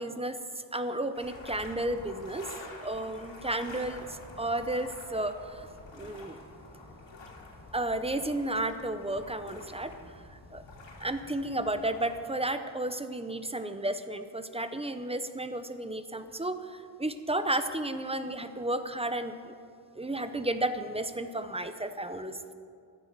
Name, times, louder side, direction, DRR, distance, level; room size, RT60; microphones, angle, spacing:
voice 1, 0.0-2.5 2.8-5.7 5.9-6.4 7.7-9.9 10.3-10.6 11.0-19.5 20.0-22.5, right 1 dB, 15° right, 10 dB, 0.7 m, -33 dB
sound 1, 1.1-12.2, left 2 dB, 75° left, 3.0 m, -48 dB
15.5 x 11.5 x 6.0 m, 2.3 s
wide cardioid pair, 130°, 46 cm